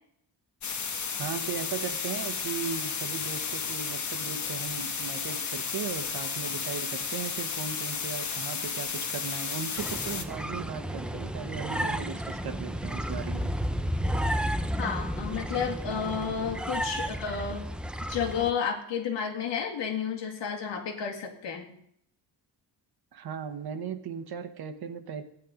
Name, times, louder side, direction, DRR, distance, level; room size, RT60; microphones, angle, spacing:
sound 1, 0.6-10.2, left 6 dB, 40° left, 1.2 m, -33 dB
voice 1, 1.2-13.5 23.1-25.2, right 6 dB, 60° right, 8 dB, 1.2 m, -37 dB
sound 2, 9.8-18.5, equal, ahead, 0.4 m, -32 dB
voice 2, 14.8-17.7 18.1-21.7, left 6 dB, 80° left, 2 dB, 2.2 m, -31 dB
14.5 x 10.0 x 5.1 m, 0.73 s
wide cardioid pair, 160°, 43 cm